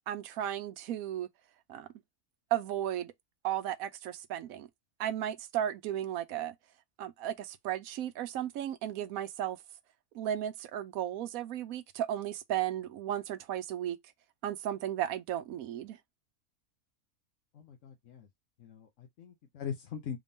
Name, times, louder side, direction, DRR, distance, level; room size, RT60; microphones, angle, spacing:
voice 1, 0.1-1.3 1.7-1.9 2.5-3.1 3.4-4.7 5.0-6.6 7.0-9.6 10.1-14.0 14.4-16.0, right 11 dB, 70° right, 1.0 m, -34 dB
voice 2, 17.5-18.3 18.6-20.2, left 7 dB, 60° left, 1.1 m, -41 dB
3.6 x 3.5 x 2.6 m
omnidirectional pair, 1.6 m